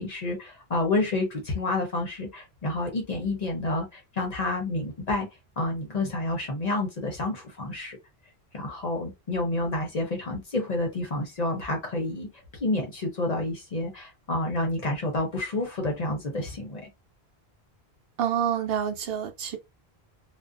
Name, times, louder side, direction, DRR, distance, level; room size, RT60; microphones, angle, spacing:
voice 1, 0.0-5.3 5.6-8.0 8.5-12.3 12.6-16.9, left 2 dB, 45° left, 0.7 m, -29 dB
voice 2, 18.2-19.6, right 8 dB, 70° right, 0.8 m, -27 dB
2.4 x 2.1 x 2.5 m
omnidirectional pair, 1.1 m